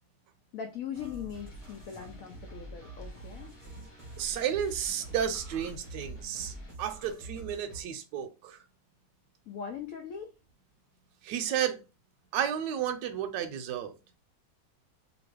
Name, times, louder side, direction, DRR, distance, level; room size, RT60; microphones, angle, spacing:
voice 1, 0.5-3.5 9.5-10.3, left 8 dB, 80° left, 0.7 m, -40 dB
sound 1, 0.9-7.8, right 2 dB, 30° right, 0.6 m, -46 dB
sound 2, 1.3-6.7, left 1 dB, 50° left, 1.0 m, -53 dB
voice 2, 4.2-8.6 11.2-11.8 12.3-13.9, right 9 dB, 75° right, 1.1 m, -32 dB
2.9 x 2.5 x 3.1 m
omnidirectional pair, 2.0 m